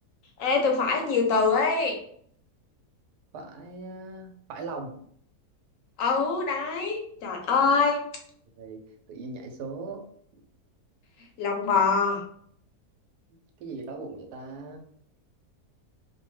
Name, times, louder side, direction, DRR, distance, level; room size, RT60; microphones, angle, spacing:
voice 1, 0.4-2.0 6.0-8.0 11.4-12.2, left 4 dB, 65° left, 2 dB, 0.9 m, -24 dB
voice 2, 3.3-5.0 8.6-10.0 13.6-14.8, right 3 dB, 80° right, 3 dB, 1.2 m, -39 dB
2.8 x 2.1 x 3.1 m, 0.62 s
omnidirectional pair, 1.7 m